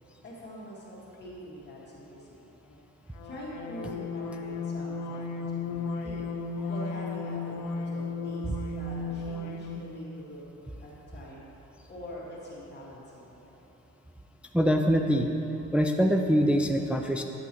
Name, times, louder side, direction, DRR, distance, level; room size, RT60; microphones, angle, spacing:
voice 1, 0.2-2.8 3.2-6.3 6.7-10.4 10.8-11.5 11.9-13.5, equal, 35° left, -7 dB, 1.6 m, -44 dB
sound 1, 3.2-10.0, left 3 dB, 85° left, 0.5 m, -34 dB
voice 2, 14.5-15.3 15.7-17.2, equal, 5° right, 4 dB, 0.3 m, -24 dB
9.7 x 6.0 x 3.0 m, 3.0 s
cardioid pair, 90°, 30 cm